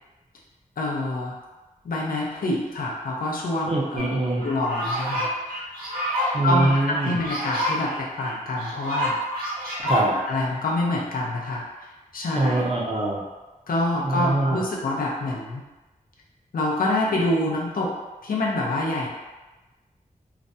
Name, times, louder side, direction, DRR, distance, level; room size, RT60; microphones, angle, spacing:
voice 1, 0.8-1.4 1.8-4.1 4.4-5.3 6.4-9.2 9.8-11.6 12.1-12.6 13.7-15.6 16.5-17.9 18.2-19.1, left 1 dB, 75° left, -3 dB, 0.5 m, -26 dB
voice 2, 3.7-4.4 6.3-7.2 9.9-10.2 12.3-13.2 14.0-14.6, right 2 dB, 40° right, -3 dB, 0.6 m, -23 dB
sound 1, 4.0-4.1 4.4-10.0, equal, 90° right, 0.7 m, -29 dB
2.4 x 2.1 x 2.6 m, 1.1 s
wide cardioid pair, 85°, 15 cm